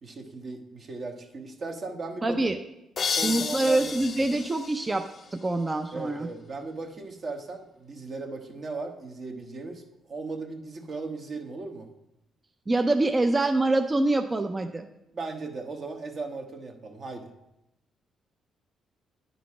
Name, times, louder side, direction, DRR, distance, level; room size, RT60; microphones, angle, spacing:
voice 1, 0.0-2.4 3.2-4.0 5.9-9.8 10.1-11.9 15.1-17.3, right 3 dB, 45° right, 4 dB, 1.0 m, -37 dB
voice 2, 2.2-2.6 3.2-5.1 5.3-6.3 12.7-14.9, right 2 dB, 25° right, 7 dB, 0.4 m, -25 dB
sound 1, 3.0-5.7, left 6 dB, 50° left, 0.4 m, -33 dB
9.4 x 4.0 x 4.8 m, 0.88 s
cardioid pair, 90°, 0 cm